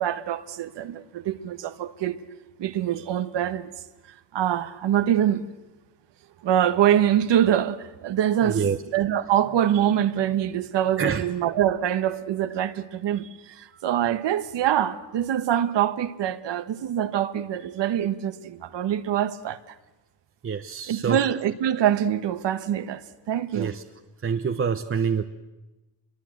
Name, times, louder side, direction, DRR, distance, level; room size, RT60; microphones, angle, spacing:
voice 1, 0.0-2.2 2.6-3.7 4.3-5.5 6.4-8.6 8.9-13.3 13.6-19.6 20.9-23.0 23.3-23.7, right 10 dB, 80° right, 1.3 m, -24 dB
voice 2, 8.4-8.8 11.0-11.2 20.4-21.2 23.5-23.8 24.2-25.2, right 6 dB, 30° right, 0.9 m, -26 dB
26.0 x 22.5 x 7.8 m
cardioid pair, 130°, 42 cm